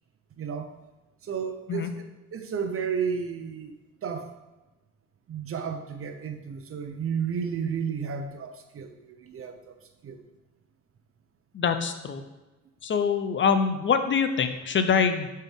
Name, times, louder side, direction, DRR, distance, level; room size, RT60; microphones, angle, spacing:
voice 1, 0.4-0.7 1.2-1.9 2.3-3.7 4.0-4.3 5.3-9.7 10.0-10.2, right 6 dB, 45° right, 6 dB, 0.8 m, -32 dB
voice 2, 11.5-12.2 12.8-15.3, left 6 dB, 40° left, 9 dB, 0.6 m, -24 dB
6.8 x 4.4 x 3.7 m, 1.1 s
cardioid pair, 90°, 30 cm